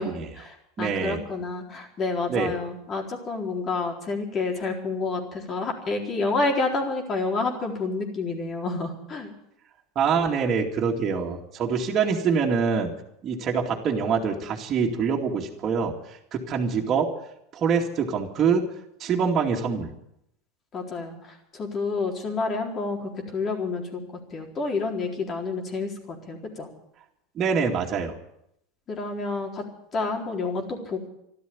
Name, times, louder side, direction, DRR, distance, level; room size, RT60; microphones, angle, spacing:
voice 1, 0.0-9.3 20.7-24.0 24.3-26.7 28.9-29.6 29.9-31.1, left 3 dB, 35° left, 2 dB, 4.0 m, -29 dB
voice 2, 0.8-1.2 2.3-2.5 10.0-12.9 13.2-15.9 16.3-17.1 17.5-18.6 19.0-19.9 27.4-28.1, right 6 dB, 40° right, -1 dB, 2.4 m, -25 dB
13.0 x 12.5 x 8.6 m, 0.77 s
hypercardioid pair, 95°, 0 cm